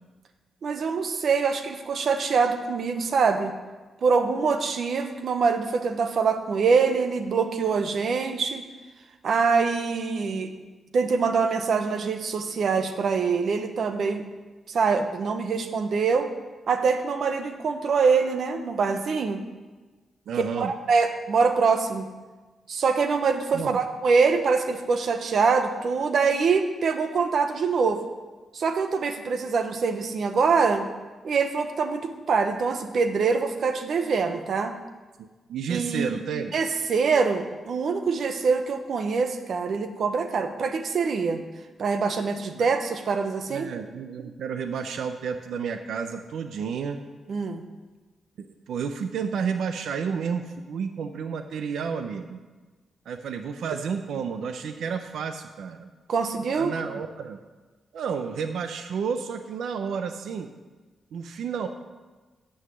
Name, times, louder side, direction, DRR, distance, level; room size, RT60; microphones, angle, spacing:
voice 1, 0.6-3.5 4.0-8.6 9.2-10.5 10.9-14.2 14.7-16.3 16.7-19.4 20.6-22.1 22.7-28.0 28.5-30.9 31.2-34.8 35.7-36.2 36.5-41.4 41.8-43.7 47.3-47.6 56.1-56.7, right 5 dB, 50° right, 7 dB, 0.9 m, -24 dB
voice 2, 20.3-20.7 23.5-23.8 35.2-36.5 42.5-42.6 43.5-47.0 48.4-52.4 53.1-55.9 56.5-57.4 57.9-60.5 61.1-61.7, right 6 dB, 75° right, 7 dB, 0.6 m, -31 dB
9.7 x 5.7 x 7.8 m, 1.3 s
wide cardioid pair, 175°, 0 cm